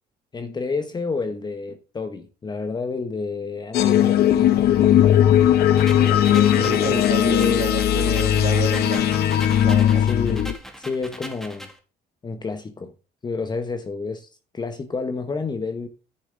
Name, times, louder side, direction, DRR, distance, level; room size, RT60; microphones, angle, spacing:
voice 1, 0.3-5.2 10.0-11.7 12.2-12.9 13.2-15.9, left 4 dB, 25° left, 1.0 m, -30 dB
sound 1, 3.7-10.5, left 11 dB, 70° left, 0.9 m, -18 dB
sound 2, 5.8-11.8, equal, ahead, 2.2 m, -39 dB
voice 2, 5.9-9.1 9.6-10.0, right 7 dB, 50° right, 1.7 m, -31 dB
9.7 x 6.9 x 3.7 m
cardioid pair, 110°, 17 cm